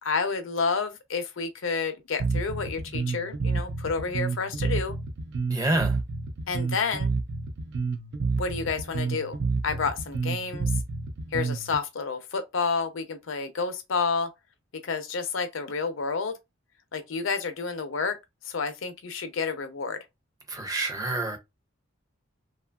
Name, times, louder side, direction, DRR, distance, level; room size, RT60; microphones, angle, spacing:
voice 1, 0.0-5.0 6.5-7.1 8.4-9.4 9.6-10.7 11.3-14.3 14.7-16.4 16.9-18.2 18.4-20.0, left 5 dB, 70° left, 0.6 m, -30 dB
Bass guitar, 2.2-11.8, right 4 dB, 60° right, 0.5 m, -29 dB
voice 2, 5.5-6.0 20.5-21.4, right 2 dB, 20° right, 0.6 m, -27 dB
2.8 x 2.4 x 2.3 m
head